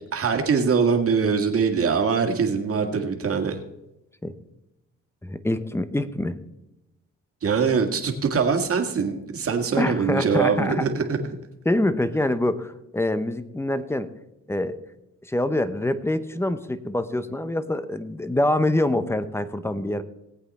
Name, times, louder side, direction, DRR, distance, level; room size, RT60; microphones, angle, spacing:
voice 1, 0.1-3.6 7.4-11.2, right 5 dB, 50° right, 4 dB, 2.0 m, -23 dB
voice 2, 5.2-6.4 9.8-10.9 11.6-14.1 14.5-14.8 15.2-20.0, left 1 dB, 10° left, 12 dB, 0.9 m, -25 dB
18.5 x 8.2 x 4.3 m, 0.92 s
cardioid pair, 90°, 30 cm